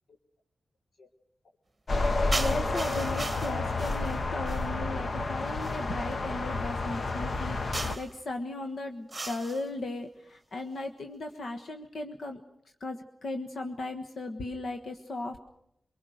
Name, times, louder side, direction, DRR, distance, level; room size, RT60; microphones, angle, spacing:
sound 1, 1.9-8.0, left 2 dB, 40° left, 1.0 m, -30 dB
voice 1, 2.3-12.4 12.8-15.4, left 2 dB, 60° left, 4 dB, 1.5 m, -37 dB
sound 2, 2.3-4.8 5.6-5.9 7.7-8.2 9.1-9.7, right 2 dB, 15° right, 1.6 m, -37 dB
24.0 x 23.5 x 6.5 m, 0.75 s
wide cardioid pair, 150°, 0 cm